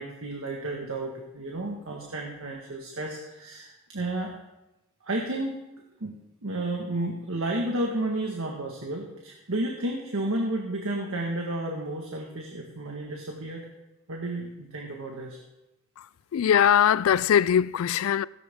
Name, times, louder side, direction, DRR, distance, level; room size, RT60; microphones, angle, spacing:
voice 1, 0.0-4.3 5.0-5.5 6.0-6.2 6.4-13.7 14.1-15.4, right 1 dB, 85° right, 1.6 m, -32 dB
voice 2, 16.3-18.2, left 9 dB, 80° left, 0.3 m, -21 dB
16.5 x 11.0 x 3.6 m
head